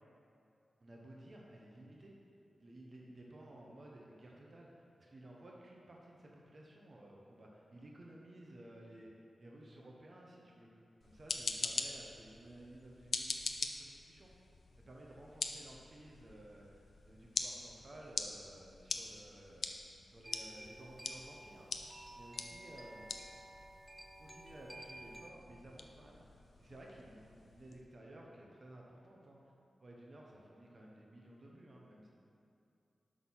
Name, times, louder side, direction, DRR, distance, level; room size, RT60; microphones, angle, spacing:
voice 1, 0.8-2.1 2.6-10.7 11.0-14.3 14.9-19.7 20.1-23.1 24.2-26.3 26.6-29.4 29.8-32.1, right 1 dB, 40° right, -2 dB, 0.9 m, -55 dB
sound 1, 11.0-27.8, left 4 dB, 65° left, 0.5 m, -44 dB
sound 2, 20.2-25.3, right 1 dB, 15° right, 0.5 m, -53 dB
6.2 x 6.0 x 5.6 m, 2.6 s
wide cardioid pair, 125°, 0 cm